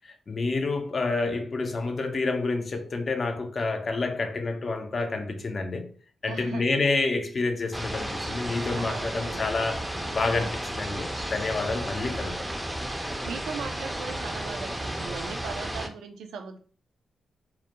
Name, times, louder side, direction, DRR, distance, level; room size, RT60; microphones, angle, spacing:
voice 1, 0.0-5.9 6.2-12.6, left 3 dB, 50° left, 0.5 m, -29 dB
voice 2, 6.3-6.6 8.8-9.4 13.2-16.6, right 5 dB, 90° right, 0.3 m, -38 dB
sound 1, 7.7-15.9, right 1 dB, 10° right, 0.4 m, -33 dB
2.2 x 2.1 x 2.9 m
cardioid pair, 60°, 0 cm